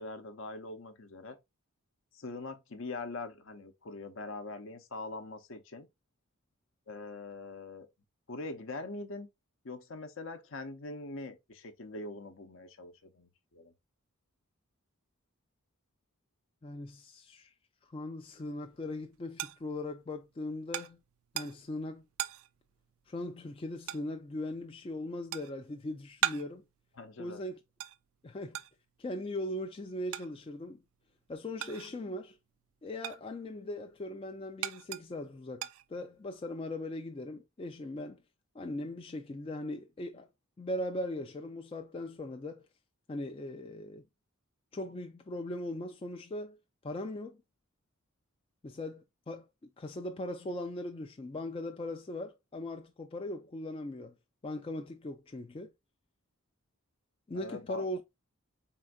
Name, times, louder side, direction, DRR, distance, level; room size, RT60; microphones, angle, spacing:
voice 1, 0.0-1.4 2.1-5.9 6.9-7.9 8.3-9.3 9.6-13.7 26.9-27.4 57.3-57.9, left 3 dB, 60° left, 0.7 m, -43 dB
voice 2, 16.6-17.5 17.9-21.0 21.3-22.0 23.1-26.6 27.2-27.6 28.2-28.6 29.0-30.8 31.3-32.4 32.8-38.2 38.5-40.3 40.6-42.6 43.1-44.0 44.7-46.6 46.8-47.4 48.6-49.5 49.8-54.1 54.4-55.7 57.3-58.0, left 1 dB, 25° left, 0.3 m, -39 dB
sound 1, 18.4-32.2 32.5-36.4, right 11 dB, 65° right, 0.4 m, -41 dB
4.3 x 3.7 x 2.3 m
head